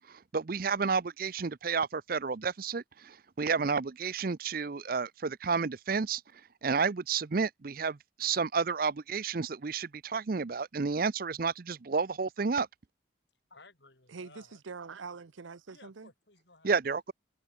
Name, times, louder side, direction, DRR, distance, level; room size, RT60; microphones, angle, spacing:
voice 1, 0.1-6.2 6.6-12.7 16.6-17.1, right 5 dB, 50° right, 0.5 m, -31 dB
voice 2, 13.5-14.6 15.7-16.7, left 3 dB, 60° left, 4.6 m, -58 dB
voice 3, 14.1-16.1, right 5 dB, 80° right, 0.7 m, -44 dB
head